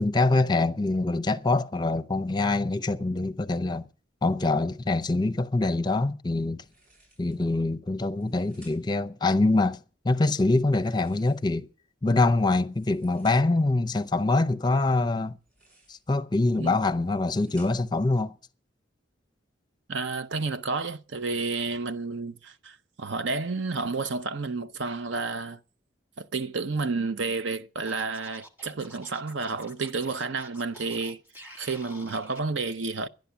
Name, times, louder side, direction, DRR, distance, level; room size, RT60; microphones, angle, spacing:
voice 1, 0.0-3.8 4.2-6.6 7.2-9.8 10.0-11.7 12.0-15.4 15.9-18.3, left 2 dB, 20° left, 0.6 m, -24 dB
sound 1, 6.6-7.5 8.1-9.1 10.6-11.7 12.5-13.7 15.3-16.2 16.8-18.0, right 1 dB, 45° right, 7.5 m, -60 dB
voice 2, 19.9-25.6 26.2-31.2 31.6-33.1, right 4 dB, 70° right, 0.7 m, -31 dB
Scratching (performance technique), 27.9-32.4, equal, 10° right, 1.4 m, -49 dB
11.5 x 10.5 x 7.0 m
head